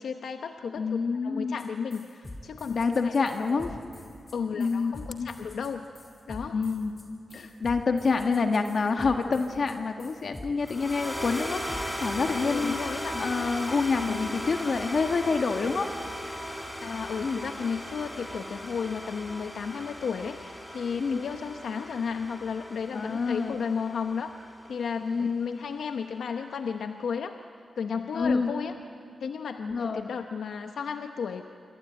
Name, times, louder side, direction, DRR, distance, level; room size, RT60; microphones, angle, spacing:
voice 1, 0.0-2.7 3.0-3.1 3.5-3.8 4.3-5.9 6.3-6.6 7.3-7.6 12.4-13.2 13.9-14.2 16.8-24.3 24.7-27.4 27.8-28.7 29.2-31.5, left 6 dB, 85° left, 6 dB, 0.9 m, -33 dB
voice 2, 0.7-1.6 2.7-3.8 4.5-5.3 6.5-6.9 7.3-12.8 13.2-15.9 17.2-17.4 21.0-21.2 22.9-23.6 25.0-25.3 28.1-28.5 29.6-30.0, left 4 dB, 65° left, 5 dB, 1.5 m, -27 dB
sound 1, 1.6-1.7 1.9-12.2, left 1 dB, 25° left, 5.1 m, -45 dB
sound 2, 10.6-25.0, equal, 5° left, 5.5 m, -37 dB
26.5 x 25.0 x 9.0 m, 2.6 s
cardioid pair, 75°, 0 cm